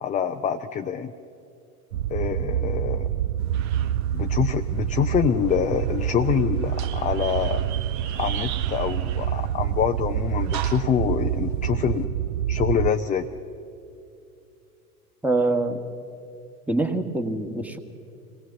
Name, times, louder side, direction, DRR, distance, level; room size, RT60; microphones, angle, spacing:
voice 1, 0.0-1.1 2.1-3.1 4.1-7.6 8.2-12.1 12.5-13.3, left 8 dB, 15° left, 6 dB, 0.6 m, -25 dB
sound 1, 1.9-12.9, right 11 dB, 70° right, 0.6 m, -27 dB
sound 2, 3.4-12.1, right 11 dB, 40° right, 1.0 m, -40 dB
voice 2, 15.2-15.8 16.7-17.8, right 2 dB, 5° right, 4 dB, 1.5 m, -24 dB
26.0 x 18.0 x 7.1 m, 2.6 s
figure-of-eight pair, 85°, 45 cm